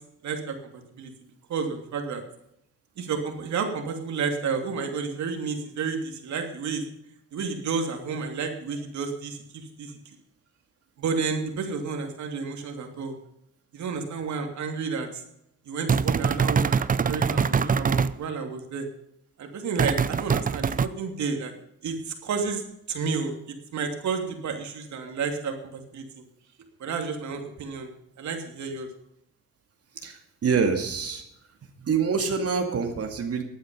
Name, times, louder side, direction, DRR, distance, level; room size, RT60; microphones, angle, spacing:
voice 1, 0.2-1.1 1.5-2.2 3.0-6.8 7.3-10.0 11.0-13.2 13.7-15.2 15.6-18.9 19.4-21.5 21.8-23.3 23.7-26.0 26.8-27.9 28.2-28.9, right 5 dB, 70° right, 4 dB, 3.0 m, -31 dB
sound 1, 15.9-18.1 19.8-20.9, right 6 dB, 30° right, 0.6 m, -23 dB
voice 2, 30.0-31.2 31.8-33.4, right 5 dB, 50° right, 4 dB, 2.3 m, -26 dB
16.0 x 9.6 x 5.4 m, 0.77 s
cardioid pair, 90°, 30 cm